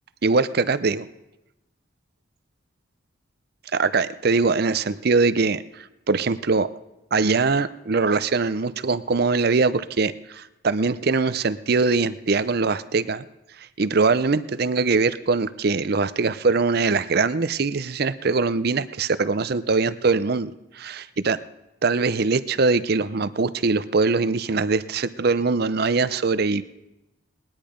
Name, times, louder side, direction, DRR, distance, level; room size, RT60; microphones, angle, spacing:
voice 1, 0.2-1.1 3.7-6.7 7.1-13.2 13.6-21.4 21.8-26.6, right 4 dB, 50° right, 14 dB, 0.6 m, -22 dB
20.0 x 10.5 x 5.1 m, 0.94 s
head